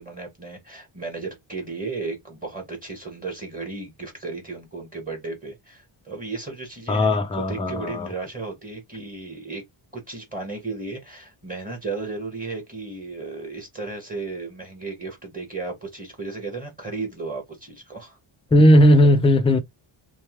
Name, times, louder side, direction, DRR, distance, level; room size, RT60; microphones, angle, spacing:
voice 1, 0.0-9.6 9.9-18.2, right 3 dB, 15° right, 1.3 m, -34 dB
voice 2, 6.9-8.1 18.5-19.6, equal, 15° left, 0.3 m, -16 dB
3.0 x 2.2 x 3.1 m
cardioid pair, 125°, 49 cm